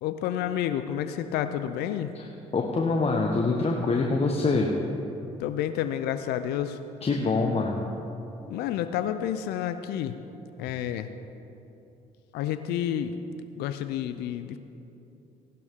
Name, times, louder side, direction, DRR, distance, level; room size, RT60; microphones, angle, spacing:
voice 1, 0.0-2.1 5.4-6.8 8.5-10.2 10.6-11.1 12.3-13.2 13.5-14.6, left 10 dB, 70° left, 10 dB, 0.6 m, -30 dB
voice 2, 2.5-4.7 7.0-7.8, left 3 dB, 35° left, 0 dB, 1.2 m, -25 dB
16.0 x 11.5 x 3.7 m, 2.8 s
hypercardioid pair, 60°, 17 cm